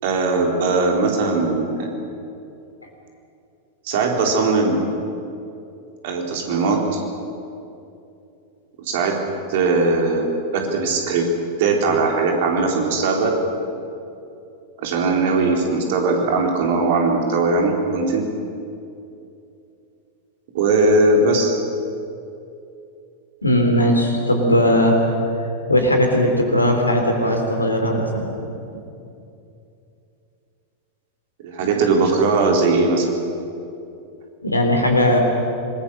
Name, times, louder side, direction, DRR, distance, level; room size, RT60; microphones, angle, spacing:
voice 1, 0.0-1.9 3.8-4.8 6.0-7.0 8.9-9.2 9.5-11.3 11.6-13.3 14.8-18.3 20.5-21.6 31.4-33.1, right 3 dB, 50° right, 1 dB, 4.0 m, -19 dB
voice 2, 23.4-25.0 25.7-28.3 34.4-35.2, left 1 dB, 85° left, 3 dB, 3.9 m, -18 dB
26.0 x 21.0 x 6.5 m, 2.7 s
figure-of-eight pair, 90°, 0 cm